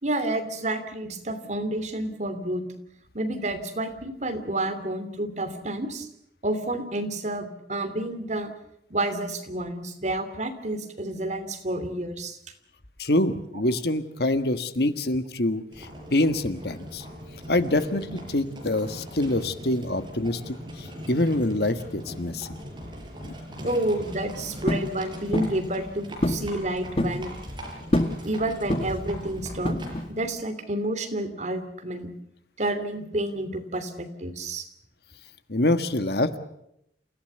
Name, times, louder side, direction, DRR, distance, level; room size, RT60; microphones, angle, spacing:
voice 1, 0.0-2.6 3.1-6.1 6.4-8.5 8.9-12.4 23.6-27.3 28.2-29.8 30.1-32.1 32.6-34.7, right 1 dB, 40° right, 8 dB, 2.9 m, -29 dB
voice 2, 13.0-17.0 17.5-22.5 23.2-23.3 35.5-36.4, left 1 dB, 65° left, 10 dB, 1.5 m, -25 dB
Livestock farm animals working animals, 15.7-30.1, equal, 25° right, 5.9 m, -40 dB
sound 1, 24.7-24.9 25.3-25.6 26.2-26.5 26.7-27.2 27.9-28.2 28.7-29.1 29.6-30.1, left 1 dB, 35° left, 1.6 m, -25 dB
28.5 x 16.0 x 8.1 m, 0.77 s
head